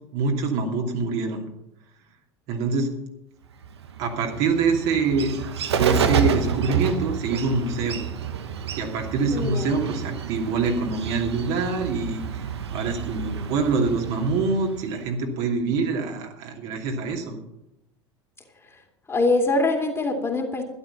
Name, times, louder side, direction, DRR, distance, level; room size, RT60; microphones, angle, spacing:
voice 1, 0.1-1.5 2.5-2.9 4.0-5.3 5.7-8.0 8.8-12.5 12.7-17.4, right 4 dB, 50° right, 1 dB, 2.6 m, -25 dB
Bird, 3.6-15.1, right 7 dB, 70° right, 1.1 m, -29 dB
voice 2, 9.3-9.9 13.3-13.9 18.7-18.8 19.1-20.6, left 2 dB, 15° left, 3 dB, 2.6 m, -25 dB
12.5 x 11.5 x 5.8 m, 0.86 s
figure-of-eight pair, 75°, 14 cm